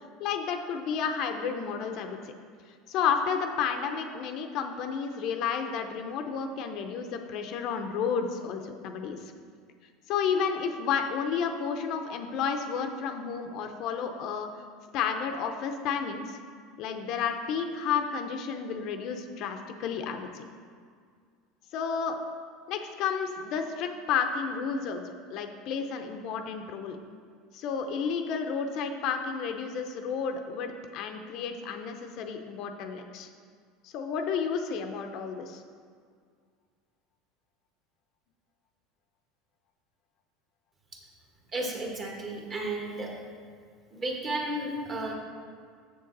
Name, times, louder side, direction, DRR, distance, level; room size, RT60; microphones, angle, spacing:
voice 1, 0.2-2.2 2.9-9.2 10.1-14.5 14.9-16.4 16.8-20.4 21.7-22.2 22.7-27.0 27.5-33.3 33.8-35.6, left 6 dB, 55° left, 5 dB, 0.6 m, -31 dB
voice 2, 41.5-43.1 43.9-45.1, right 1 dB, 30° right, 0 dB, 1.4 m, -33 dB
7.4 x 6.6 x 4.0 m, 2.1 s
supercardioid pair, 130°, 0 cm